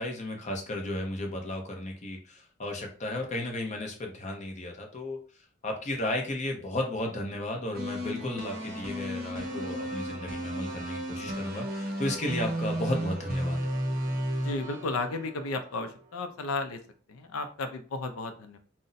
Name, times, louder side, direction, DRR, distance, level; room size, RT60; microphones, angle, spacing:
voice 1, 0.0-5.2 5.6-13.6, left 1 dB, 35° left, 2 dB, 0.7 m, -34 dB
sound 1, 7.7-15.9, equal, 45° right, 0.6 m, -34 dB
voice 2, 14.4-16.8 17.1-18.6, left 3 dB, 90° left, 7 dB, 0.4 m, -33 dB
2.5 x 2.1 x 3.9 m, 0.39 s
head